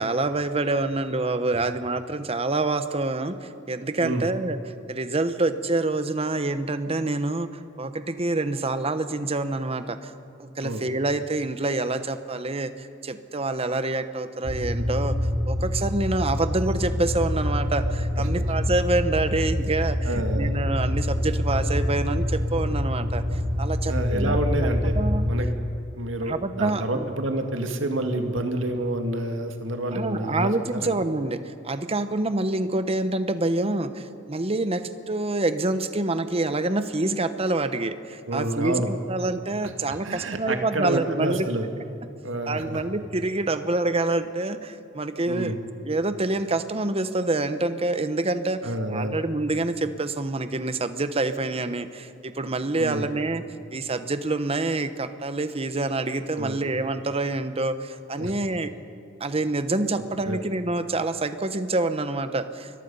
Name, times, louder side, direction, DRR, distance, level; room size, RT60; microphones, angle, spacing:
voice 1, 0.0-4.6 4.9-10.1 10.4-15.2 15.5-24.4 24.9-25.2 26.2-27.1 29.9-41.5 42.5-45.5 45.8-53.4 53.7-58.7 59.2-62.7, right 2 dB, 30° right, 10 dB, 1.0 m, -27 dB
sound 1, 14.4-25.4, left 1 dB, 60° right, 3.3 m, -26 dB
voice 2, 18.2-18.5 20.1-20.5 23.9-24.9 25.3-25.5 26.0-30.5 38.3-38.9 39.9-41.7 42.2-42.8 45.3-45.6 48.6-49.2 52.8-53.1 56.3-56.6 58.2-58.3 60.3-60.4, right 1 dB, 75° right, 5 dB, 2.1 m, -28 dB
28.5 x 22.5 x 5.5 m, 2.7 s
head